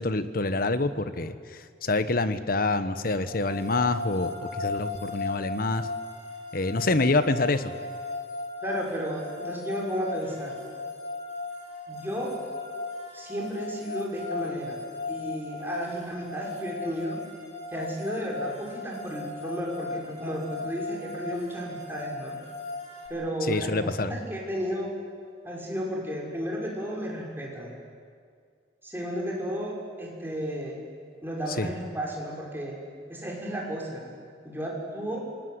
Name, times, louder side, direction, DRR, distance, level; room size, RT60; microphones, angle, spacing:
voice 1, 0.0-5.9 6.5-7.7 23.5-24.1 31.6-31.7, left 2 dB, 55° left, 12 dB, 1.2 m, -26 dB
sound 1, 3.3-23.1, left 3 dB, 35° left, 7.2 m, -37 dB
voice 2, 8.6-10.6 11.9-12.4 13.1-14.8 15.1-17.2 17.7-22.4 23.1-24.9 25.4-27.7 28.8-30.8 31.2-32.8 33.1-34.0 34.4-35.3, equal, 15° right, -2 dB, 5.9 m, -33 dB
27.0 x 19.5 x 9.7 m, 2.1 s
head